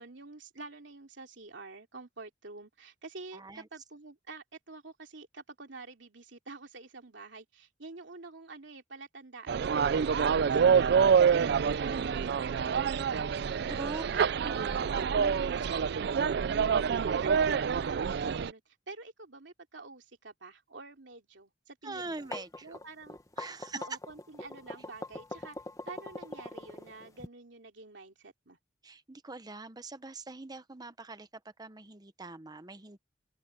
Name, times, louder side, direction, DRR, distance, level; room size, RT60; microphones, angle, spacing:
voice 1, 0.0-13.4 14.1-14.7 14.9-16.2 16.5-17.4 17.8-22.3 22.6-23.2 23.7-25.6 25.9-28.6, right 3 dB, 80° right, 2.8 m, -48 dB
voice 2, 3.3-3.7 13.7-14.0 14.4-15.3 21.8-22.8 23.4-23.9 28.8-31.3 31.6-33.0, right 2 dB, 20° right, 0.9 m, -43 dB
sound 1, 9.5-18.5, right 6 dB, 60° right, 0.4 m, -27 dB
sound 2, 22.0-27.3, left 2 dB, 20° left, 1.3 m, -42 dB
open air
head